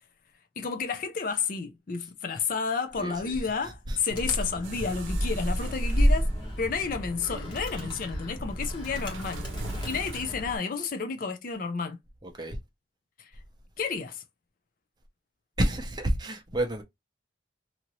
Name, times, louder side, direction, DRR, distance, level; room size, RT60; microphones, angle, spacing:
voice 1, 0.6-6.3 6.6-9.4 9.9-12.0 13.2-13.3 13.8-14.2, left 5 dB, 45° left, 0.4 m, -31 dB
voice 2, 3.0-3.3 3.9-4.0 9.7-10.0 12.2-12.6 15.6-16.8, right 1 dB, 25° right, 0.6 m, -29 dB
Animal, 4.1-10.6, equal, 25° left, 1.1 m, -30 dB
sound 1, 4.6-10.5, right 2 dB, 85° right, 0.6 m, -42 dB
2.8 x 2.6 x 2.9 m
head